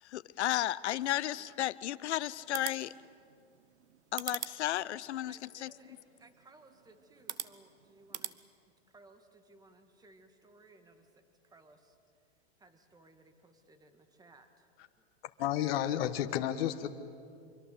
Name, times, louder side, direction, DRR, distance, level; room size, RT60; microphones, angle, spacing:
voice 1, 0.0-2.9 4.1-5.7, left 13 dB, 80° left, 17 dB, 0.8 m, -33 dB
sound 1, 2.4-8.4, right 10 dB, 90° right, 1.1 m, -45 dB
voice 2, 5.3-8.6 8.9-12.0 12.6-14.7 15.8-16.0, right 2 dB, 10° right, 7 dB, 2.0 m, -60 dB
voice 3, 15.4-16.9, left 11 dB, 60° left, 7 dB, 1.3 m, -31 dB
25.0 x 24.0 x 7.8 m, 2.4 s
hypercardioid pair, 125°, 34 cm